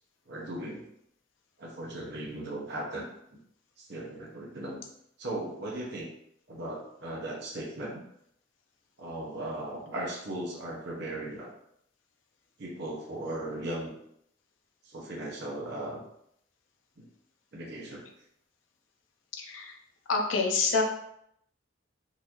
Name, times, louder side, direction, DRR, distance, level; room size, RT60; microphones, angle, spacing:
voice 1, 0.3-0.9 1.6-3.0 3.8-4.8 5.2-6.1 6.5-8.0 9.0-11.5 12.6-13.9 14.8-16.0 17.0-17.1 17.5-18.1, right 1 dB, 60° right, -3 dB, 0.8 m, -37 dB
voice 2, 19.3-19.8 20.1-20.8, left 4 dB, 80° left, 2 dB, 0.6 m, -27 dB
3.9 x 2.6 x 2.9 m, 0.74 s
head